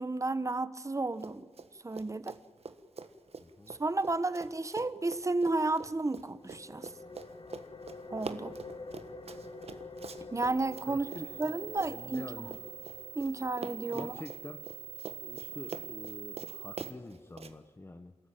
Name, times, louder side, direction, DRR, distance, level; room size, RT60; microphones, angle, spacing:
voice 1, 0.0-1.5 1.8-2.4 3.7-6.9 8.1-8.6 10.3-11.1 11.4-12.5 13.1-14.1, right 2 dB, 25° right, 14 dB, 1.1 m, -32 dB
Run, 1.1-1.7 1.9-13.3 13.6-17.5, right 5 dB, 65° right, 1.4 m, -45 dB
voice 2, 3.4-3.7 10.9-12.6 13.9-14.6 15.2-18.2, left 2 dB, 20° left, 6 dB, 1.2 m, -47 dB
sound 1, 6.3-17.7, left 3 dB, 50° left, 2.3 m, -49 dB
sound 2, 10.4-16.9, right 9 dB, 85° right, 0.7 m, -45 dB
28.0 x 13.5 x 9.1 m, 1.4 s
cardioid pair, 70°, 11 cm